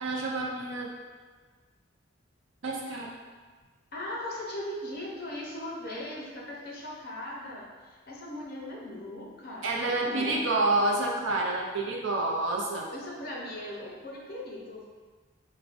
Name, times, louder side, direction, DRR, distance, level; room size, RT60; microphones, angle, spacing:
voice 1, 0.0-0.9 2.6-3.1 9.6-12.9, right 2 dB, 70° right, -1 dB, 0.5 m, -28 dB
voice 2, 3.9-10.7 12.9-14.8, left 1 dB, 50° left, -3 dB, 0.6 m, -39 dB
4.8 x 2.1 x 2.5 m, 1.4 s
head